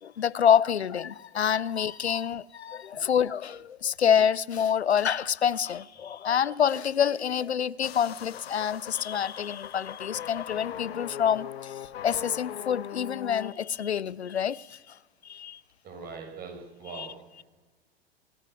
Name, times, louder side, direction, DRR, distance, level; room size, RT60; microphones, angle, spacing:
voice 1, 0.0-15.6 16.9-17.1, left 8 dB, 85° left, 0.6 m, -27 dB
sound 1, 7.8-13.5, left 10 dB, 70° left, 0.9 m, -40 dB
voice 2, 15.8-17.1, right 5 dB, 30° right, 6.6 m, -41 dB
25.5 x 12.5 x 9.3 m
figure-of-eight pair, 95°, 32 cm